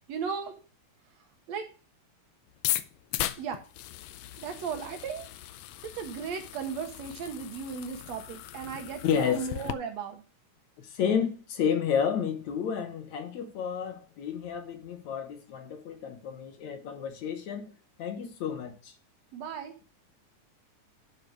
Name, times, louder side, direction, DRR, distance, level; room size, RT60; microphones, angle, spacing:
voice 1, 0.1-0.6 1.5-1.7 3.4-3.6 4.4-5.3 5.8-10.2 19.3-19.7, right 6 dB, 65° right, 2.1 m, -36 dB
sound 1, 2.5-9.7, left 14 dB, 85° left, 1.4 m, -37 dB
voice 2, 9.0-9.5 10.8-17.7 18.0-18.9, left 8 dB, 65° left, 2.4 m, -31 dB
11.5 x 4.9 x 4.7 m
omnidirectional pair, 3.6 m